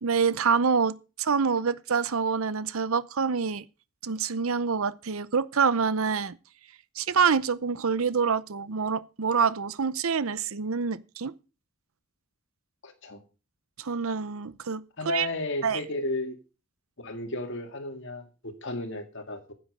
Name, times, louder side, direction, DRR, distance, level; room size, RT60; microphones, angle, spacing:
voice 1, 0.0-3.6 4.0-6.4 7.0-11.3 13.8-15.3 15.6-15.8, right 5 dB, 65° right, 0.7 m, -26 dB
voice 2, 12.8-13.2 15.0-16.4 17.0-19.5, left 1 dB, 55° left, 2.1 m, -33 dB
10.0 x 7.9 x 6.5 m
head